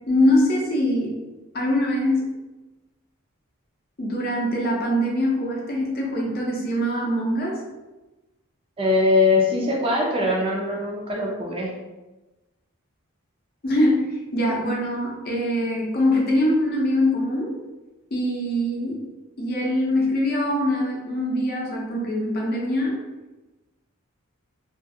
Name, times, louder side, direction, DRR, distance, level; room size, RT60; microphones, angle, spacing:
voice 1, 0.1-1.1 1.5-2.3 4.0-7.6 13.6-17.5 18.1-19.0 19.4-23.0, left 1 dB, 45° left, -2 dB, 0.6 m, -23 dB
voice 2, 8.8-11.7, left 2 dB, 25° right, -2 dB, 0.3 m, -21 dB
2.5 x 2.4 x 2.6 m, 1.1 s
head